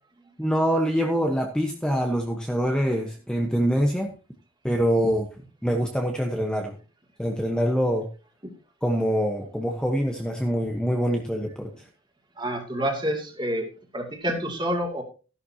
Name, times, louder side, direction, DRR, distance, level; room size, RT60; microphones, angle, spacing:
voice 1, 0.4-4.1 4.6-5.3 5.6-6.7 7.2-8.1 8.8-11.9, equal, 5° left, 1 dB, 1.1 m, -24 dB
voice 2, 12.4-15.0, equal, 20° right, 2 dB, 2.6 m, -28 dB
14.0 x 11.0 x 2.9 m, 0.34 s
head